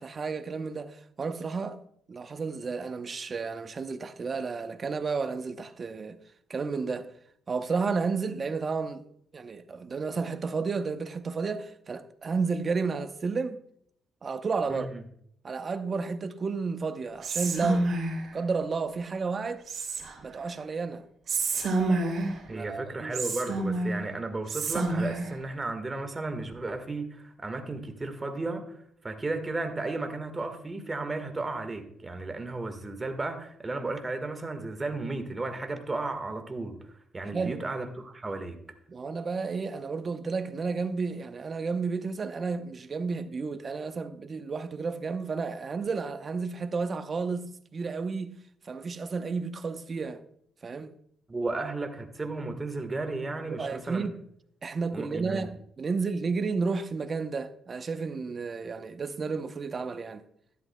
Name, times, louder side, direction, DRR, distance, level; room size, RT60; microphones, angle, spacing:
voice 1, 0.0-1.8 2.1-6.2 6.5-7.1 7.5-9.0 9.3-13.6 14.2-15.0 15.4-17.9 18.3-19.6 20.2-21.1 22.5-23.3 37.3-37.6 38.9-48.4 48.7-50.2 50.6-50.9 53.5-54.1 54.6-60.2, right 4 dB, 40° right, 0.7 m, -32 dB
voice 2, 14.7-15.0 22.5-28.8 29.0-36.8 37.1-38.6 51.3-54.1 54.9-55.5, right 2 dB, 25° right, 1.5 m, -34 dB
Whispering, 17.2-18.3 19.7-20.4 21.3-22.5 23.1-24.1 24.5-25.3, right 2 dB, 55° right, 2.9 m, -28 dB
12.5 x 11.0 x 2.2 m
cardioid pair, 90°, 0 cm